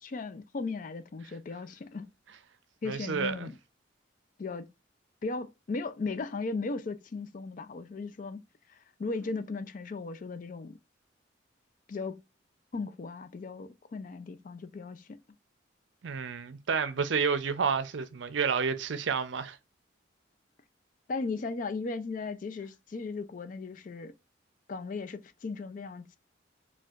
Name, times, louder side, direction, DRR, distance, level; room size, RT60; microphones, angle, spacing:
voice 1, 0.0-2.1 2.8-3.5 4.4-4.7 5.2-8.4 8.7-10.8 11.9-12.2 12.7-15.2 21.1-24.1 24.7-26.2, left 3 dB, 45° left, 0.4 m, -37 dB
voice 2, 2.8-3.5 16.0-19.6, right 5 dB, 75° right, 0.5 m, -30 dB
4.3 x 2.3 x 2.4 m
head